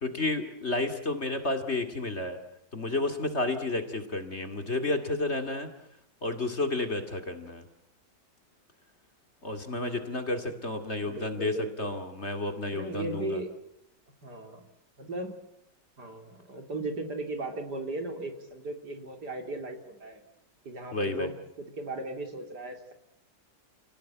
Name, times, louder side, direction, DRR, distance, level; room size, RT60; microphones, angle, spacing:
voice 1, 0.0-2.4 2.7-5.7 6.2-7.6 9.4-13.4 20.9-21.3, left 2 dB, 35° left, 6 dB, 2.5 m, -31 dB
voice 2, 11.0-12.0 12.7-13.5 14.2-14.6 15.0-15.3 16.0-20.2 20.6-22.9, right 2 dB, 60° right, 5 dB, 4.0 m, -37 dB
29.0 x 19.0 x 9.2 m, 0.78 s
omnidirectional pair, 2.0 m